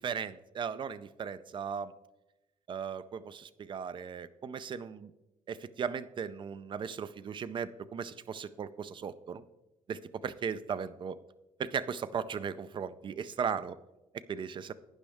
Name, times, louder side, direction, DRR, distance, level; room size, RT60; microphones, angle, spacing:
voice 1, 0.0-1.9 2.7-5.1 5.5-9.4 9.9-11.2 11.6-13.8 14.3-14.7, right 7 dB, 40° right, 15 dB, 0.5 m, -37 dB
11.5 x 9.4 x 3.5 m, 0.99 s
cardioid pair, 150°, 13 cm